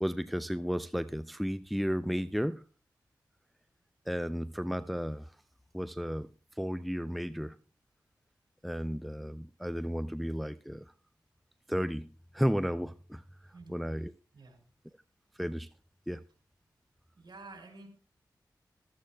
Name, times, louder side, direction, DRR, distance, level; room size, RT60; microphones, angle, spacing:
voice 1, 0.0-2.6 4.1-5.3 5.7-6.3 6.6-7.6 8.6-10.9 11.7-12.1 12.3-13.2 13.7-14.1 15.4-15.7 16.1-16.2, equal, ahead, 0.5 m, -33 dB
voice 2, 17.2-17.9, right 3 dB, 65° right, 4.4 m, -50 dB
15.0 x 13.0 x 2.3 m
cardioid pair, 40°, 8 cm